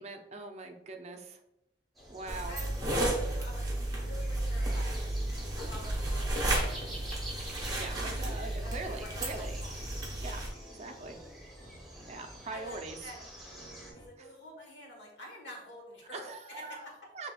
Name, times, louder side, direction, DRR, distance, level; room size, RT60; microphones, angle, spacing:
voice 1, 0.0-1.4 2.1-2.6 7.8-9.6 10.2-10.4 10.8-11.1 12.1-13.0 16.1-17.3, right 3 dB, 35° right, 5 dB, 0.4 m, -42 dB
sound 1, 2.0-13.9, right 1 dB, ahead, 1.0 m, -48 dB
sound 2, 2.3-10.5, right 1 dB, 20° right, 0.8 m, -33 dB
voice 2, 2.5-5.0 5.5-7.3 8.6-9.8 12.5-13.2 13.9-16.2 16.5-16.9, left 1 dB, 75° left, -1 dB, 1.4 m, -48 dB
sound 3, 3.9-14.1, equal, 30° left, 0.7 m, -54 dB
5.5 x 3.2 x 2.3 m, 0.84 s
head